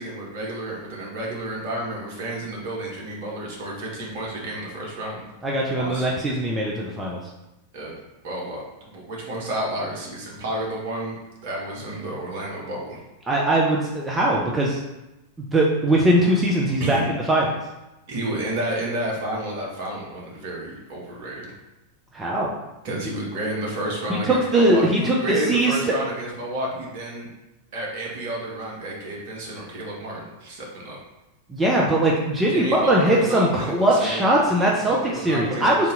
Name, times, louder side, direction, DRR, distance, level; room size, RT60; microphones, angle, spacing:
voice 1, 0.0-5.2 5.7-6.0 7.7-8.0 8.2-11.2 11.4-13.0 16.8-17.1 18.1-21.5 22.8-27.3 27.7-31.0 32.5-35.9, right 1 dB, 50° right, -3 dB, 1.1 m, -31 dB
voice 2, 5.4-7.2 13.3-14.8 15.5-17.5 22.1-22.5 24.1-26.0 31.5-35.0 35.2-35.9, right 1 dB, 15° right, -3 dB, 0.5 m, -20 dB
3.5 x 2.8 x 3.8 m, 0.99 s
figure-of-eight pair, 90°, 0 cm